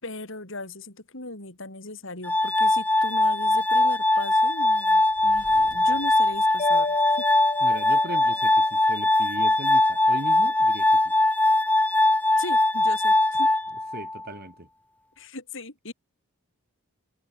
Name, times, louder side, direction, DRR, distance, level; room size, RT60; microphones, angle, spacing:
voice 1, 0.0-7.2 12.4-13.5 15.2-15.9, left 2 dB, 60° left, 4.2 m, -38 dB
Glass, 2.2-14.3, left 2 dB, 5° left, 0.8 m, -21 dB
sound 1, 5.0-8.0, right 1 dB, 20° right, 5.2 m, -52 dB
Mallet percussion, 6.6-8.7, left 3 dB, 30° left, 1.2 m, -32 dB
voice 2, 7.6-11.1 13.9-14.7, right 1 dB, 45° right, 4.6 m, -38 dB
head